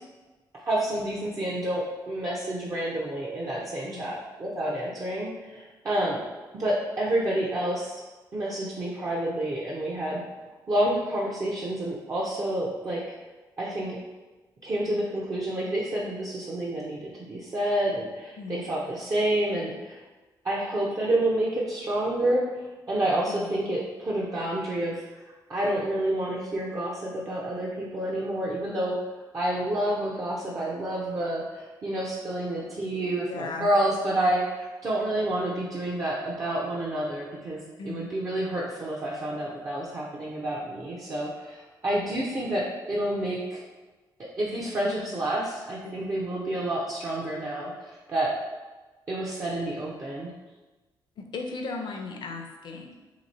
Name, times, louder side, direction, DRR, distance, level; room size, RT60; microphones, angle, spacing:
voice 1, 0.5-6.2 6.5-8.0 8.3-10.2 10.7-13.0 13.6-14.0 14.6-20.0 20.4-22.4 22.9-25.0 25.5-29.0 29.3-43.6 44.2-48.3 49.1-50.3, right 1 dB, 40° right, -5 dB, 0.7 m, -29 dB
voice 2, 3.8-4.1 18.4-18.7 23.3-23.5 33.3-33.7 37.8-38.1 45.8-45.9 51.2-52.9, left 4 dB, 65° left, 4 dB, 0.6 m, -37 dB
3.0 x 2.9 x 4.1 m, 1.2 s
cardioid pair, 85°, 8 cm